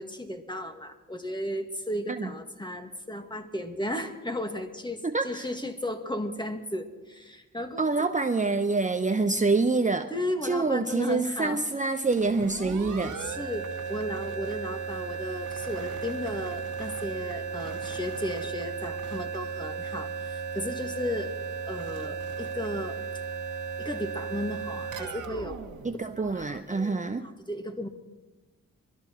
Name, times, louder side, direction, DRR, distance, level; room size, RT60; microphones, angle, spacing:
voice 1, 0.0-7.9 10.1-11.6 13.2-21.4 21.7-23.0 23.8-25.6 26.2-27.9, left 1 dB, 15° left, 5 dB, 2.0 m, -35 dB
voice 2, 5.0-5.5 7.8-10.1 10.4-13.2 25.8-27.3, right 3 dB, 25° right, 7 dB, 0.8 m, -26 dB
sound 1, 12.1-26.7, right 6 dB, 70° right, 1.8 m, -35 dB
21.0 x 13.0 x 4.6 m, 1.2 s
supercardioid pair, 45°, 32 cm